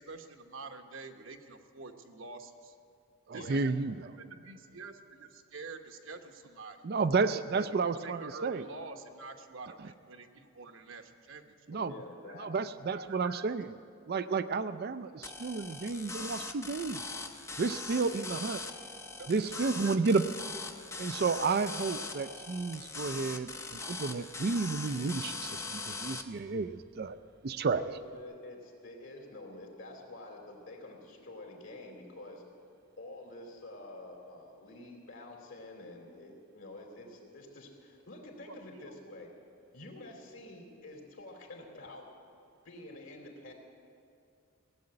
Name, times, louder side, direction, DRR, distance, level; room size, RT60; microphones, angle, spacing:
voice 1, 0.0-2.8 3.3-3.8 4.2-6.8 7.5-11.5 12.9-13.5 19.2-20.0 38.5-39.0, right 3 dB, 65° right, 5 dB, 1.0 m, -47 dB
voice 2, 3.3-3.9 6.8-8.7 11.7-11.9 12.4-13.7 14.1-17.1 17.6-18.6 19.3-20.2 21.0-27.2 27.4-27.8, right 4 dB, 50° right, 11 dB, 0.4 m, -31 dB
voice 3, 11.7-12.7 27.8-32.4 33.0-39.3 39.7-42.1 42.6-43.5, left 2 dB, 65° left, 1 dB, 2.8 m, -48 dB
sound 1, 15.2-26.2, left 3 dB, 15° left, 0.6 m, -41 dB
17.0 x 7.8 x 9.7 m, 2.4 s
head